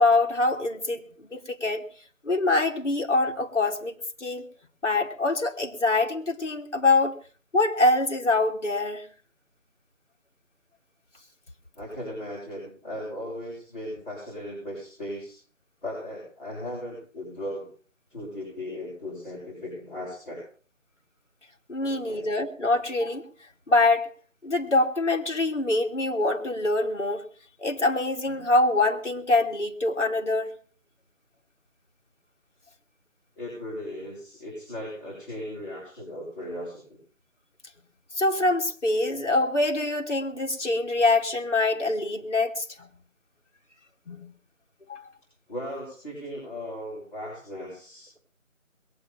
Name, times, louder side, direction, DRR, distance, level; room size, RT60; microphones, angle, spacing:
voice 1, 0.0-1.8 2.2-4.5 4.8-7.1 7.5-9.1 21.7-23.2 23.7-24.1 24.4-27.2 27.6-30.5 38.2-42.9 44.1-44.3 44.9-45.0, left 2 dB, 60° left, 1 dB, 2.9 m, -24 dB
voice 2, 11.8-15.4 15.8-17.7 18.1-20.4 21.8-22.3 33.4-37.0 45.5-48.2, left 1 dB, 40° left, -6 dB, 7.0 m, -37 dB
22.0 x 8.8 x 5.7 m, 0.42 s
figure-of-eight pair, 175°, 40 cm